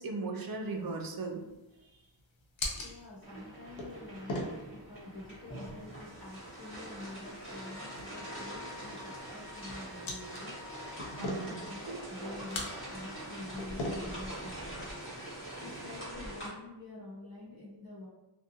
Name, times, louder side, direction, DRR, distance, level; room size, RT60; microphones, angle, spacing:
voice 1, 0.0-1.4 11.2-11.6 11.9-12.4, right 3 dB, 50° right, 2 dB, 0.5 m, -38 dB
sound 1, 0.6-16.0, left 1 dB, 75° left, 0.6 m, -44 dB
voice 2, 2.7-10.9 11.1-14.9 15.6-18.1, left 2 dB, 45° left, -5 dB, 1.1 m, -47 dB
sound 2, 3.2-16.5, right 1 dB, 25° left, 1.1 m, -44 dB
Wind instrument woodwind instrument, 7.5-11.8, left 6 dB, ahead, 0.6 m, -52 dB
2.5 x 2.2 x 2.6 m, 0.97 s
wide cardioid pair, 85°, 47 cm